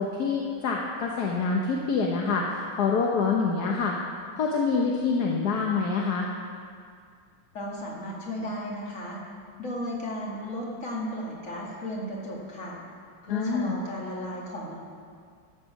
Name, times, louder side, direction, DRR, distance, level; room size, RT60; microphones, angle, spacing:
voice 1, 0.0-4.0 4.4-6.3 13.3-13.7, left 4 dB, 55° left, 0 dB, 1.3 m, -26 dB
voice 2, 7.5-9.2 9.6-12.8 13.2-14.7, equal, 40° left, -3 dB, 2.4 m, -34 dB
13.5 x 8.3 x 5.9 m, 2.2 s
omnidirectional pair, 2.3 m